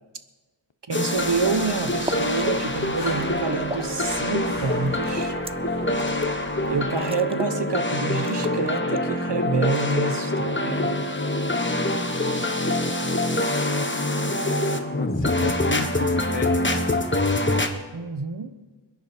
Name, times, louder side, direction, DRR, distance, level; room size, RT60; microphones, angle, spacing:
sound 1, 0.9-17.7, left 1 dB, 25° left, 1.3 m, -25 dB
voice 1, 0.9-5.4 6.7-10.9 17.9-18.5, right 4 dB, 60° right, 9 dB, 1.1 m, -27 dB
sound 2, 1.0-1.1 1.5-2.5 3.0-4.1 4.4-6.2 6.7-6.8 6.9-7.6 7.9-8.0 8.2-9.3 9.7-10.3 11.1-11.6, right 2 dB, 15° right, 0.4 m, -37 dB
sound 3, 1.1-6.9, left 1 dB, 50° left, 3.5 m, -42 dB
voice 2, 14.8-16.9, left 5 dB, 70° left, 9 dB, 1.1 m, -33 dB
22.5 x 10.5 x 4.5 m, 1.3 s
wide cardioid pair, 45°, 46 cm